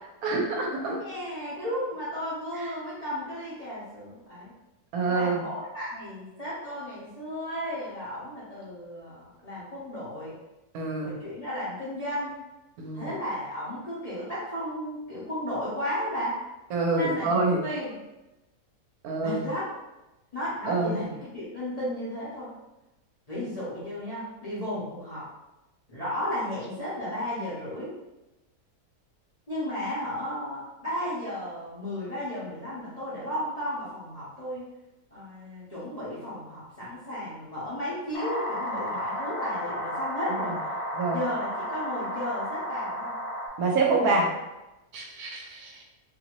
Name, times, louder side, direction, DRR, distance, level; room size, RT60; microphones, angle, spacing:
voice 1, 0.2-1.0 4.9-5.4 10.7-11.2 12.8-13.1 16.7-17.6 19.0-19.5 20.7-21.0 41.0-41.2 43.6-44.2 44.9-45.8, right 3 dB, 75° right, 0 dB, 1.0 m, -26 dB
voice 2, 0.9-4.5 5.1-10.3 11.0-12.3 12.9-16.4 16.9-17.4 17.6-17.9 19.2-19.7 20.3-22.5 23.3-25.2 25.9-27.9 29.5-34.6 35.1-40.5 41.1-43.2 44.0-44.2, equal, 35° left, -10 dB, 0.7 m, -34 dB
sound 1, 38.1-43.5, equal, 75° left, 1.1 m, -33 dB
2.7 x 2.6 x 3.0 m, 1.0 s
omnidirectional pair, 1.7 m